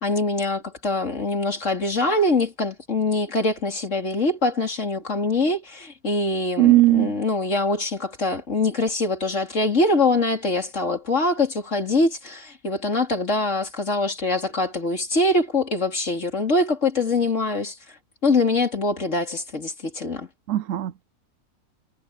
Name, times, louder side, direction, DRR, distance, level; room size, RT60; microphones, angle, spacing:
voice 1, 0.0-17.8 18.2-20.3, left 2 dB, 55° left, 3.6 m, -23 dB
voice 2, 6.6-7.2 20.5-21.0, right 17 dB, 70° right, 0.9 m, -18 dB
omnidirectional pair, 1.6 m